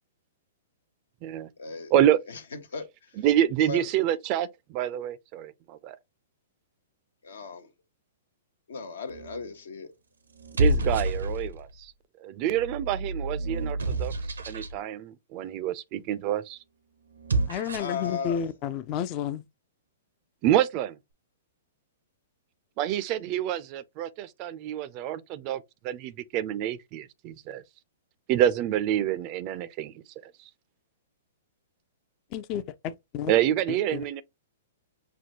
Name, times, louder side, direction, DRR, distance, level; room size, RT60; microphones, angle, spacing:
voice 1, 1.6-1.9 2.3-3.2 3.7-3.8 7.2-7.7 8.7-9.9 17.8-18.4, left 4 dB, 75° left, 0.9 m, -36 dB
voice 2, 3.1-6.0 10.6-11.9 12.2-14.1 14.5-16.6 20.4-21.0 22.8-27.6 28.3-30.0 33.3-34.2, right 11 dB, 40° right, 0.4 m, -27 dB
sound 1, 9.1-9.5 10.3-11.7 12.4-14.8 17.1-18.1, right 1 dB, 85° right, 0.7 m, -29 dB
voice 3, 17.5-19.4 32.3-33.3 33.9-34.0, left 9 dB, 40° left, 0.4 m, -31 dB
5.9 x 2.2 x 2.9 m
hypercardioid pair, 125°, 0 cm